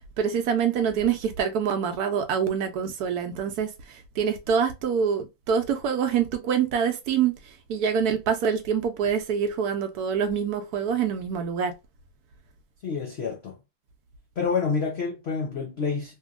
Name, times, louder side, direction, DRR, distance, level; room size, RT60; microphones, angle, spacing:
voice 1, 0.2-7.4 7.7-11.7, right 7 dB, 70° right, 1.0 m, -25 dB
voice 2, 12.8-13.6 14.4-16.2, left 5 dB, 75° left, 0.5 m, -28 dB
2.8 x 2.6 x 2.3 m
omnidirectional pair, 1.9 m